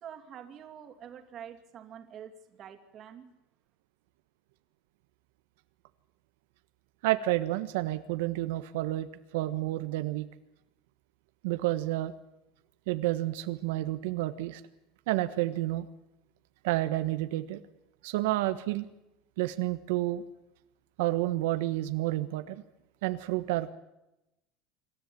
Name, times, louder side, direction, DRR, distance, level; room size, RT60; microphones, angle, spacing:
voice 1, 0.0-3.3, right 9 dB, 30° right, 5 dB, 2.6 m, -46 dB
voice 2, 7.0-9.1 9.3-10.3 11.4-12.1 12.9-14.6 15.1-15.9 16.6-17.6 18.0-18.9 19.4-20.2 21.0-22.6 23.0-23.7, right 16 dB, 85° right, 10 dB, 1.4 m, -30 dB
26.5 x 14.0 x 8.7 m, 0.88 s
cardioid pair, 180°, 0 cm